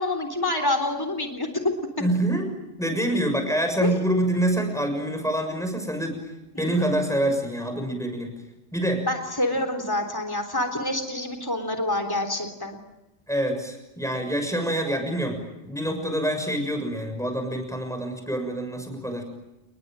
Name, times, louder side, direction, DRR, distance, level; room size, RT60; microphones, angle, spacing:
voice 1, 0.0-1.6 3.8-3.9 6.5-6.8 9.1-12.8, left 1 dB, 20° left, 4 dB, 3.7 m, -27 dB
voice 2, 2.0-2.5 2.8-6.2 6.6-8.3 8.7-9.1 13.3-19.2, right 1 dB, ahead, 5 dB, 6.7 m, -26 dB
29.5 x 21.5 x 9.2 m, 0.94 s
omnidirectional pair, 1.2 m